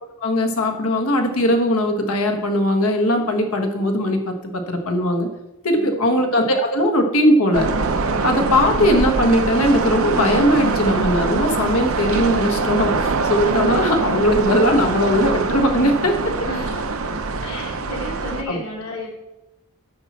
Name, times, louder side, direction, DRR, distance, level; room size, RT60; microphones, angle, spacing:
voice 1, 0.0-5.3 5.6-7.7 8.2-12.9 13.3-16.3 18.5-18.6, equal, 75° left, 4 dB, 1.4 m, -19 dB
voice 2, 5.7-6.2 13.6-13.8 16.3-19.1, left 1 dB, 90° left, -3 dB, 3.1 m, -35 dB
sound 1, 7.5-18.4, right 3 dB, 65° right, 0.7 m, -23 dB
10.5 x 7.3 x 4.2 m, 0.94 s
head